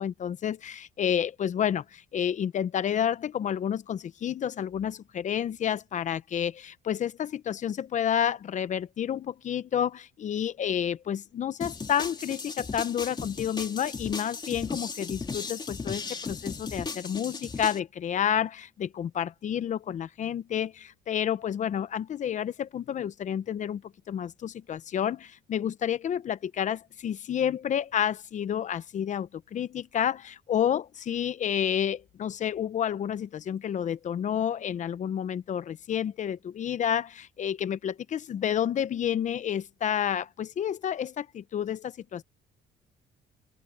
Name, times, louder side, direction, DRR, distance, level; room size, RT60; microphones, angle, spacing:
voice 1, 0.0-23.8 24.1-42.2, left 9 dB, 45° left, 0.9 m, -30 dB
sound 1, 11.6-17.8, left 4 dB, 25° left, 3.1 m, -36 dB
open air
cardioid pair, 110°, 17 cm